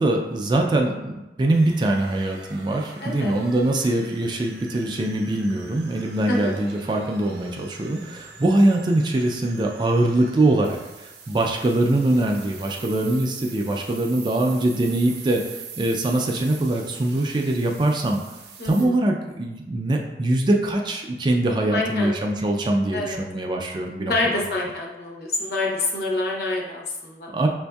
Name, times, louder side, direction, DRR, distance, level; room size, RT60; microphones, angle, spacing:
voice 1, 0.0-18.2 18.6-24.4 27.3-27.5, right 1 dB, 25° right, 1 dB, 0.3 m, -23 dB
sound 1, 1.5-18.9, right 5 dB, 70° right, 0.6 m, -43 dB
voice 2, 3.0-3.3 6.3-6.5 18.6-18.9 21.7-22.2 22.9-23.2 24.1-27.3, left 2 dB, 60° left, -2 dB, 0.8 m, -26 dB
6.0 x 2.6 x 2.3 m, 1.0 s
head